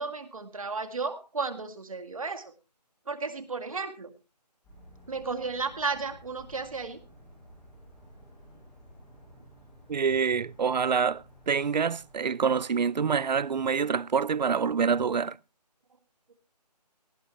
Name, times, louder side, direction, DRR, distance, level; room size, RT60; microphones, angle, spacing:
voice 1, 0.0-2.5 3.1-4.1 5.1-7.0, right 4 dB, 55° right, 2.0 m, -33 dB
sound 1, 4.6-12.1, equal, ahead, 0.9 m, -54 dB
voice 2, 9.9-15.4, right 6 dB, 85° right, 0.5 m, -26 dB
18.5 x 12.5 x 2.9 m
hypercardioid pair, 180°, 21 cm